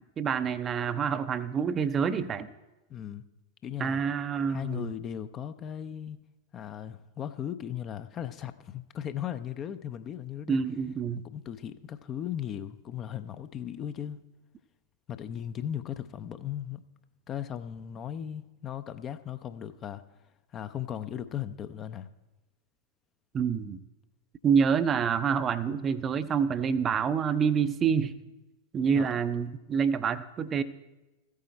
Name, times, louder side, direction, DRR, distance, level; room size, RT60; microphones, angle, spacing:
voice 1, 0.2-2.5 3.8-4.9 10.5-11.2 23.3-23.8 24.4-28.1 28.7-30.6, right 6 dB, 25° right, 12 dB, 0.5 m, -27 dB
voice 2, 2.9-3.2 3.6-4.0 4.5-6.2 6.5-10.6 11.2-14.2 15.1-16.8 17.3-20.0 20.5-22.1 28.9-29.1, left 10 dB, 30° left, 12 dB, 0.5 m, -37 dB
14.5 x 8.4 x 4.3 m, 1.1 s
figure-of-eight pair, 90°, 0 cm